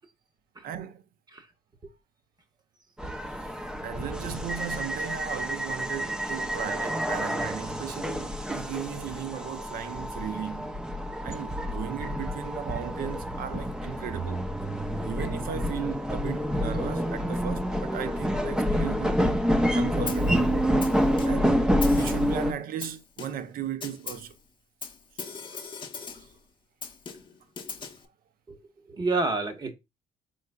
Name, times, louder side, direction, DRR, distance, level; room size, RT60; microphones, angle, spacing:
voice 1, 0.6-1.0 3.8-10.7 11.2-14.4 15.0-19.4 19.7-20.5 21.2-24.3 25.5-25.6 26.1-26.3, right 9 dB, 60° right, 0.5 m, -36 dB
sound 1, 3.0-22.5, equal, 5° right, 0.4 m, -28 dB
Snare drum, 20.1-20.4 20.8-21.5 21.8-22.4 22.8-23.5 23.8-24.3 24.8-26.3 26.8-28.0, left 5 dB, 30° left, 0.7 m, -39 dB
voice 2, 28.9-29.7, right 3 dB, 25° right, 0.9 m, -29 dB
4.4 x 3.9 x 2.2 m
cardioid pair, 110°, 17 cm